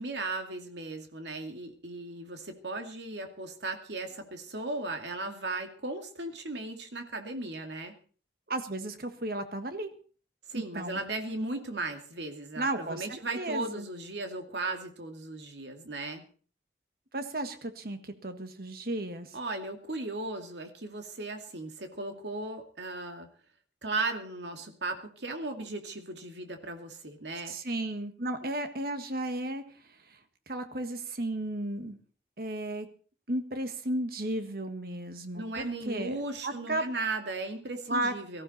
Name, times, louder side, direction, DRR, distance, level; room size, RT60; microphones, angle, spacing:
voice 1, 0.0-7.9 10.5-16.2 19.3-23.3 23.8-27.6 35.3-38.4, right 2 dB, 80° right, 5 dB, 2.4 m, -36 dB
voice 2, 8.5-9.9 10.5-11.0 12.6-13.9 17.1-19.3 27.5-29.6 30.1-30.2 30.5-32.0 32.4-32.9 33.3-36.2 36.4-36.8 37.9-38.1, right 1 dB, 55° right, 8 dB, 1.6 m, -34 dB
18.5 x 14.5 x 4.3 m, 0.41 s
head